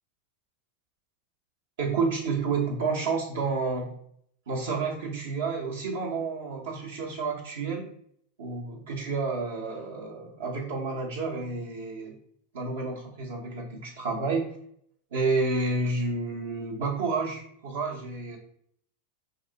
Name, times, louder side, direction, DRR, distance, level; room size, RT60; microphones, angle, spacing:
voice 1, 1.8-3.9 4.5-7.9 8.4-12.2 12.5-14.5 15.1-18.4, right 4 dB, 60° right, -1 dB, 0.7 m, -30 dB
4.0 x 2.6 x 2.7 m, 0.66 s
figure-of-eight pair, 90°, 0 cm